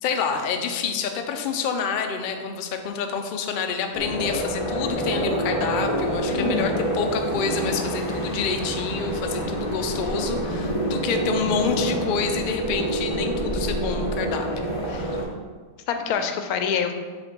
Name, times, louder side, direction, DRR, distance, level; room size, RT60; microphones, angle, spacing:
voice 1, 0.0-15.2, left 5 dB, 65° left, 4 dB, 0.5 m, -28 dB
sound 1, 3.9-15.3, right 1 dB, 30° left, 0.7 m, -27 dB
voice 2, 6.3-6.8 14.9-15.0 15.9-16.9, left 6 dB, 85° left, 6 dB, 1.1 m, -26 dB
6.7 x 3.5 x 4.4 m, 1.5 s
omnidirectional pair, 1.5 m